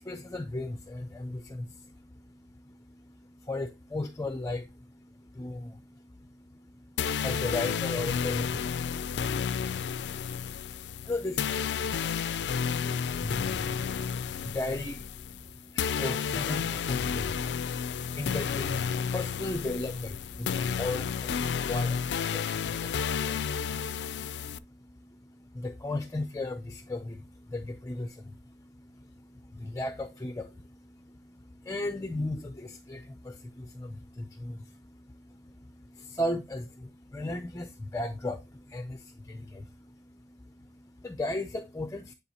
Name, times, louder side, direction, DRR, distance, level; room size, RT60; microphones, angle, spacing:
voice 1, 0.0-42.1, left 2 dB, 15° left, 0.5 m, -37 dB
sound 1, 7.0-24.6, left 7 dB, 65° left, 0.3 m, -31 dB
9.8 x 4.0 x 2.8 m
head